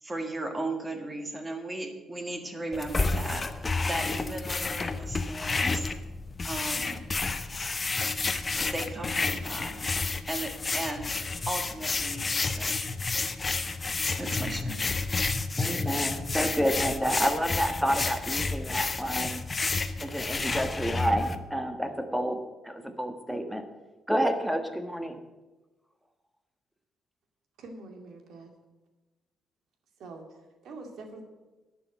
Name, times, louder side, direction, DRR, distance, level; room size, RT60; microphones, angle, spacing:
voice 1, 0.0-5.9 6.4-7.0 8.7-9.8 10.3-11.1 11.5-12.8 14.2-14.8, right 2 dB, 20° right, 5 dB, 1.8 m, -36 dB
sound 1, 2.7-21.4, left 3 dB, 30° left, 0.8 m, -30 dB
voice 2, 15.6-19.4 20.0-23.6 24.1-25.2, equal, 5° right, 7 dB, 1.3 m, -29 dB
voice 3, 27.6-28.5 30.0-31.3, right 2 dB, 70° right, 4 dB, 2.3 m, -45 dB
11.0 x 6.2 x 8.9 m, 1.1 s
cardioid pair, 90°, 0 cm